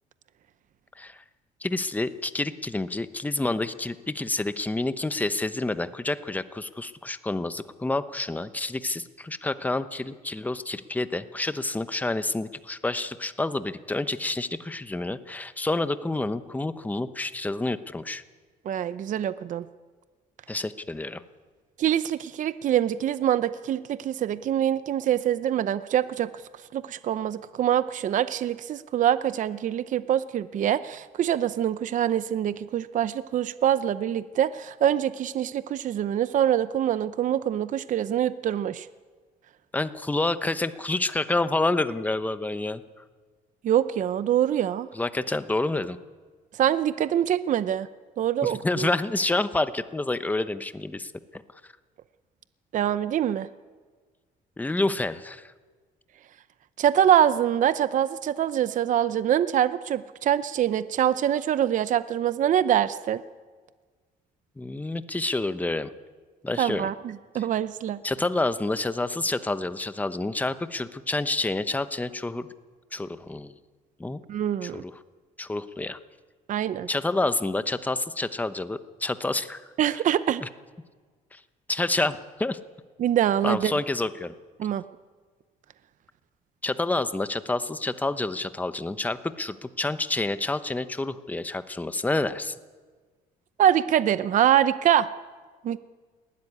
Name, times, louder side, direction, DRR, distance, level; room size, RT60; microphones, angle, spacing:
voice 1, 1.6-18.2 20.5-21.2 39.7-43.0 44.9-46.0 48.4-51.4 54.6-55.5 64.6-65.9 66.4-66.9 67.3-67.5 68.0-72.5 72.9-73.5 74.0-74.2 74.6-75.0 75.4-76.0 76.9-79.7 79.9-80.0 80.4-80.5 81.3-81.4 81.7-82.6 83.4-84.3 86.6-92.5, left 2 dB, 10° left, 12 dB, 0.9 m, -28 dB
voice 2, 18.7-19.7 21.8-26.3 26.7-38.9 43.6-44.9 46.6-47.9 48.2-48.9 52.7-53.5 56.8-63.2 66.6-68.0 74.3-74.8 76.5-76.9 79.8-80.4 83.0-83.7 84.6-84.8 93.6-95.1 95.6-95.8, right 10 dB, 50° right, 14 dB, 0.7 m, -24 dB
20.0 x 15.5 x 10.0 m, 1.5 s
cardioid pair, 110°, 17 cm